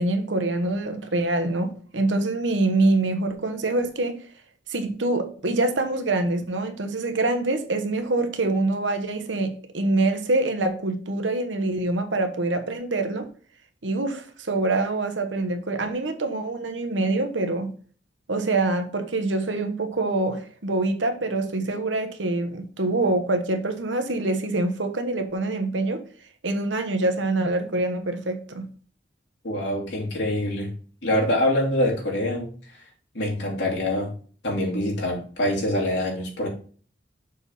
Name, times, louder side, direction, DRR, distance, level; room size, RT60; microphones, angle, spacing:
voice 1, 0.0-4.2 4.7-13.3 13.8-17.7 18.3-26.0 26.4-28.7, right 2 dB, 90° right, 1.2 m, -25 dB
voice 2, 29.4-30.7 31.0-32.5 33.1-34.1 34.4-36.5, left 1 dB, 65° left, 2.8 m, -25 dB
7.0 x 4.2 x 5.5 m
head